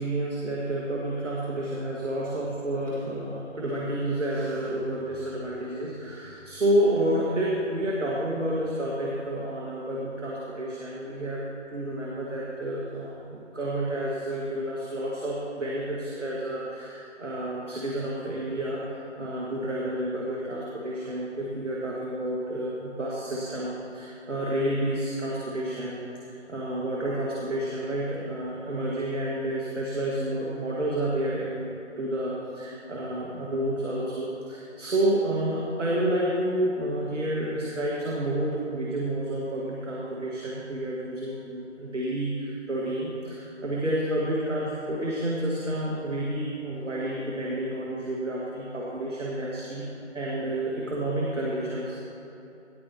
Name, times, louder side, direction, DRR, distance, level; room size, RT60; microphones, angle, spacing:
voice 1, 0.0-49.9 50.1-52.0, right 1 dB, 80° right, -4 dB, 1.9 m, -30 dB
18.0 x 10.0 x 3.0 m, 3.0 s
figure-of-eight pair, 165°, 37 cm